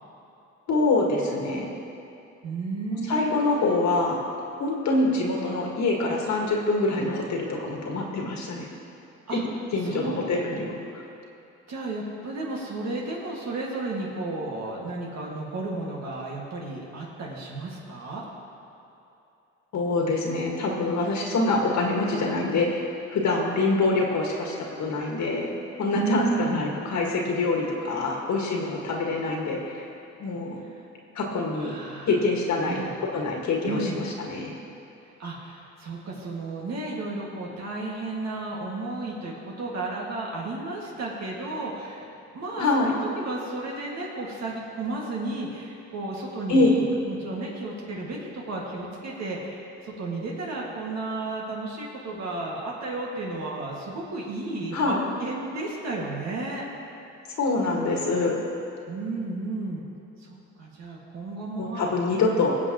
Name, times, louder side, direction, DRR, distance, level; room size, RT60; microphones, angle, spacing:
voice 1, 0.7-1.7 3.1-4.2 4.6-8.7 9.3-9.4 9.7-11.0 19.7-24.5 24.8-25.5 25.8-29.9 30.2-30.6 31.2-31.8 32.1-32.8 33.1-34.5 42.6-42.9 46.5-46.8 54.7-55.1 57.4-58.4 61.6-62.6, left 3 dB, 65° left, -1 dB, 1.8 m, -25 dB
voice 2, 2.4-3.4 7.9-8.1 9.3-9.4 9.8-10.3 11.7-18.2 25.9-26.7 30.7-30.8 31.6-32.1 32.7-32.9 33.6-34.0 35.2-56.6 58.9-59.9 60.2-61.9 62.4-62.5, right 2 dB, 60° right, -3 dB, 2.0 m, -33 dB
21.5 x 7.6 x 3.0 m, 2.7 s
cardioid pair, 90°, 30 cm